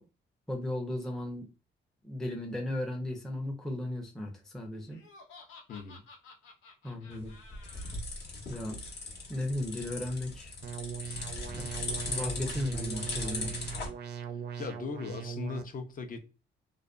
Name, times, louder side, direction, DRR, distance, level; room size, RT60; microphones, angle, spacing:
voice 1, 0.5-1.5 2.0-5.0 6.8-7.3 8.5-8.8 9.3-10.5 11.5-11.7 12.0-13.5, left 1 dB, ahead, 0.5 m, -35 dB
Laughter, 4.9-7.9, left 4 dB, 80° left, 0.7 m, -53 dB
voice 2, 5.7-6.0 14.3-16.2, left 5 dB, 45° left, 0.6 m, -39 dB
sound 1, 7.1-13.9, left 3 dB, 60° left, 1.0 m, -39 dB
sound 2, 10.6-15.6, right 7 dB, 60° right, 0.4 m, -40 dB
2.4 x 2.2 x 2.4 m
cardioid pair, 90°, 20 cm